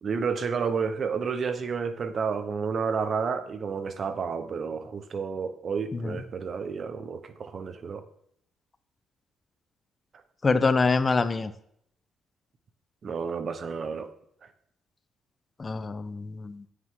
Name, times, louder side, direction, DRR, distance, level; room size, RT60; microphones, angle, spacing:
voice 1, 0.0-8.0 13.0-14.1, right 5 dB, 50° right, 11 dB, 1.1 m, -30 dB
voice 2, 10.4-11.5 15.6-16.6, left 4 dB, 30° left, 12 dB, 0.9 m, -25 dB
9.9 x 9.3 x 3.8 m, 0.69 s
cardioid pair, 90°, 0 cm